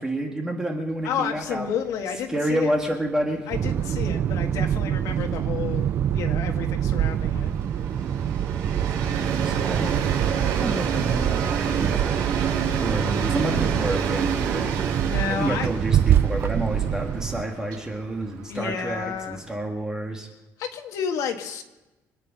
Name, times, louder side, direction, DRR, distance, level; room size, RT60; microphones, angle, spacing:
voice 1, 0.0-1.7 2.3-3.5 9.0-10.0 10.5-12.5 12.8-14.8 15.3-20.3, right 1 dB, 10° right, 2 dB, 1.7 m, -29 dB
voice 2, 1.0-2.7 3.5-7.5 15.0-15.7 18.5-19.4 20.6-21.6, left 7 dB, 65° left, 4 dB, 1.8 m, -31 dB
Train, 1.3-1.5 1.8-1.9 2.2-19.6, right 6 dB, 80° right, 2.4 m, -30 dB
sound 1, 3.5-17.4, right 10 dB, 35° right, 0.4 m, -25 dB
25.5 x 9.0 x 5.5 m, 1.1 s
cardioid pair, 180°, 6 cm